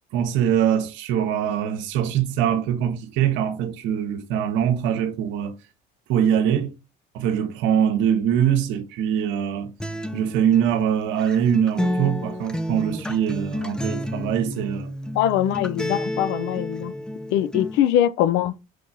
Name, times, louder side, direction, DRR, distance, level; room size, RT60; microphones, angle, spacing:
voice 1, 0.1-5.6 6.1-6.7 7.1-9.7 10.1-14.9, right 9 dB, 75° right, 1.0 m, -23 dB
Acoustic guitar, 9.8-17.8, equal, 5° left, 0.4 m, -30 dB
voice 2, 15.2-16.9 17.3-18.5, left 11 dB, 70° left, 0.5 m, -22 dB
5.1 x 2.3 x 4.0 m
supercardioid pair, 90°, 20 cm